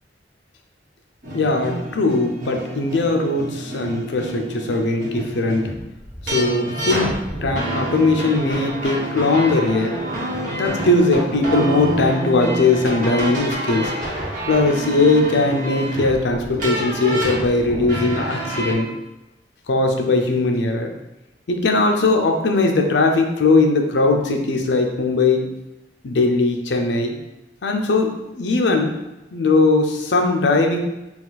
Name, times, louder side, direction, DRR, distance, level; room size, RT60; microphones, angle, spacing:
sound 1, 1.2-18.7, right 1 dB, 50° right, 1.3 m, -28 dB
voice 1, 1.3-5.7 6.3-10.0 10.5-13.9 14.5-18.9 19.7-20.9 21.5-25.5 26.0-27.2 27.6-29.0 29.3-30.8, left 3 dB, 75° left, 3 dB, 0.6 m, -19 dB
4.2 x 2.4 x 4.0 m, 0.98 s
head